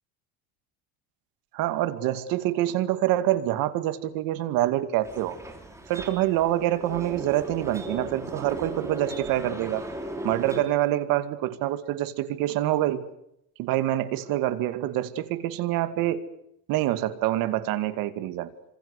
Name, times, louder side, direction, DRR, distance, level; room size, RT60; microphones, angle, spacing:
voice 1, 1.5-5.4 5.9-9.8 10.2-13.1 13.6-16.2 16.7-18.5, right 14 dB, 60° right, 12 dB, 2.2 m, -26 dB
sound 1, 5.0-10.6, right 1 dB, 10° right, 3.5 m, -37 dB
28.0 x 26.5 x 6.6 m, 0.79 s
cardioid pair, 180°, 38 cm